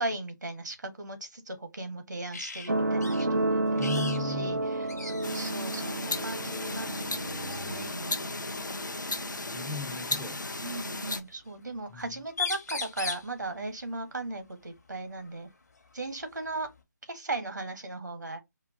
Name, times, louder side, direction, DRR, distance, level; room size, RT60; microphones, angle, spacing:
voice 1, 0.0-3.9 4.2-8.2 10.6-15.5 15.9-16.7 17.1-18.4, right 2 dB, 70° right, 1.0 m, -37 dB
sound 1, 2.3-2.7 3.0-3.3 3.8-4.2 4.5-4.6 4.9-5.5 6.6-6.9 8.6-8.7 9.8-10.6 12.0-12.1 12.3-13.3 15.3-15.4 15.8-16.8, left 5 dB, 60° left, 0.8 m, -37 dB
sound 2, 2.7-9.7 10.6-10.7, right 2 dB, 90° right, 0.5 m, -31 dB
voice 2, 3.8-4.6 9.0-10.4 11.9-12.2, left 5 dB, 5° right, 0.3 m, -38 dB
sound 3, 5.2-11.2, left 2 dB, 85° left, 0.6 m, -35 dB
4.4 x 2.2 x 2.5 m
figure-of-eight pair, 155°, 10 cm